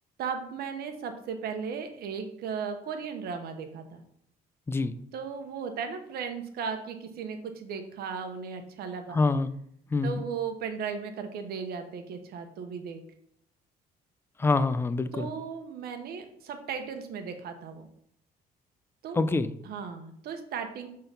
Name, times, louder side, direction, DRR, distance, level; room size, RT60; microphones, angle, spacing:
voice 1, 0.2-4.0 5.1-9.2 10.0-13.0 15.1-17.9 19.0-19.2 19.6-20.9, right 6 dB, 65° right, 7 dB, 1.0 m, -36 dB
voice 2, 9.1-9.5 9.9-10.2 14.4-15.3 19.1-19.5, left 3 dB, 15° left, 13 dB, 0.4 m, -26 dB
5.7 x 3.9 x 5.3 m, 0.71 s
cardioid pair, 110°, 17 cm